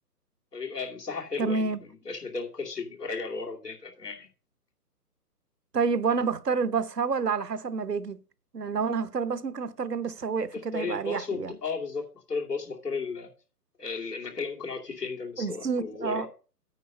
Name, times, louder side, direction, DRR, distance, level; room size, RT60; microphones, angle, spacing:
voice 1, 0.5-4.3 10.5-13.3 13.8-16.3, left 4 dB, 80° left, 2.7 m, -34 dB
voice 2, 1.4-1.8 5.7-8.2 8.5-11.6 15.4-16.3, right 5 dB, 80° right, 0.9 m, -28 dB
9.2 x 6.1 x 5.6 m
figure-of-eight pair, 135°, 47 cm